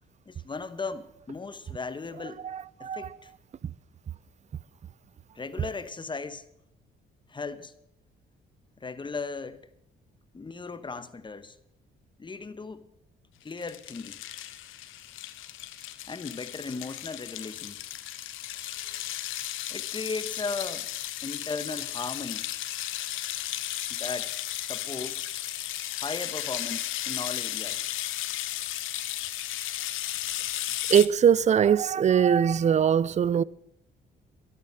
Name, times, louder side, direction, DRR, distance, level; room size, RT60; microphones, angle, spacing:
voice 1, 0.3-2.4 2.8-3.3 5.3-6.4 7.3-7.7 8.8-9.7 10.3-11.6 12.2-12.9 13.4-14.3 16.1-17.8 18.5-19.3 19.7-20.9 21.2-22.5 23.9-24.3 24.6-25.3 26.0-27.9 28.6-28.8, left 4 dB, 25° left, 1.1 m, -37 dB
voice 2, 2.4-3.2 30.9-33.4, right 8 dB, 35° right, 0.5 m, -22 dB
sound 1, 13.5-31.1, left 13 dB, 85° left, 1.0 m, -35 dB
12.5 x 12.0 x 6.4 m
cardioid pair, 90°, 20 cm